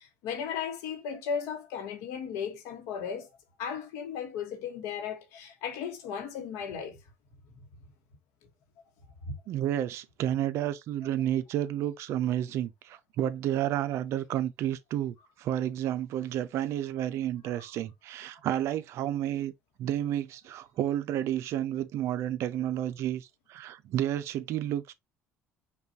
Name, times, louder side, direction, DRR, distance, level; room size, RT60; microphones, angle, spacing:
voice 1, 0.0-3.3 3.6-7.0 9.2-9.3, left 7 dB, 85° left, 1.0 m, -36 dB
voice 2, 9.5-19.5 19.8-24.9, right 11 dB, 65° right, 0.4 m, -31 dB
5.3 x 2.3 x 2.7 m
cardioid pair, 105°, 5 cm